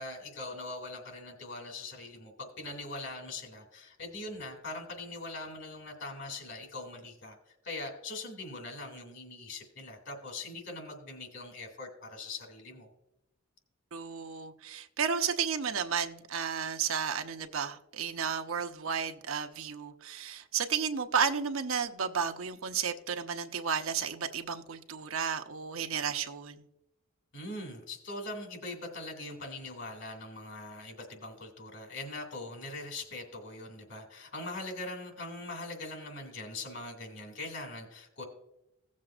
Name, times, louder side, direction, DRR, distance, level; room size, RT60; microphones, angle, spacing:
voice 1, 0.0-12.9 27.3-38.2, left 2 dB, 60° left, 3 dB, 2.4 m, -42 dB
voice 2, 13.9-26.6, right 7 dB, 75° right, 6 dB, 0.7 m, -33 dB
17.0 x 7.4 x 2.5 m, 0.88 s
head